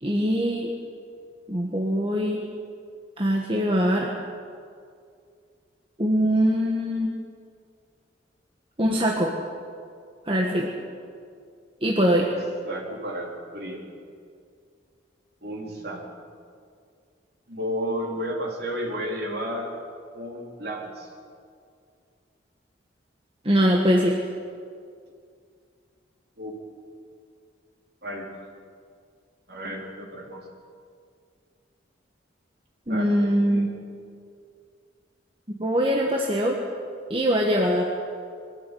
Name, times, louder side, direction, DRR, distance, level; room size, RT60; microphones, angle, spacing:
voice 1, 0.0-0.7 1.5-2.4 3.2-4.1 6.0-7.1 8.8-9.3 10.2-10.7 11.8-12.3 23.4-24.2 32.9-33.7 35.5-36.6 37.1-37.8, equal, 25° right, -1 dB, 1.5 m, -22 dB
voice 2, 12.6-13.8 15.4-16.0 17.5-19.7 20.1-21.1 26.4-26.6 28.0-28.3 29.5-30.5 32.9-33.7, equal, 55° right, -1 dB, 4.1 m, -32 dB
23.0 x 13.5 x 9.4 m, 2.3 s
head